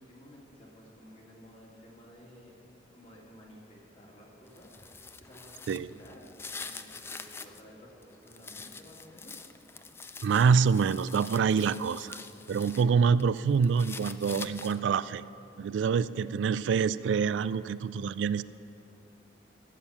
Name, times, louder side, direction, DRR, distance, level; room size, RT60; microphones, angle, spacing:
voice 1, 0.0-4.7 5.2-6.3 6.6-9.5, equal, 35° left, -3 dB, 2.5 m, -53 dB
sound 1, 4.5-7.6 8.0-12.9 13.2-15.0, left 4 dB, 15° left, 0.3 m, -45 dB
voice 2, 10.2-12.2 12.5-15.2 15.6-18.4, right 6 dB, 85° right, 17 dB, 0.3 m, -26 dB
14.0 x 7.3 x 7.2 m, 3.0 s
head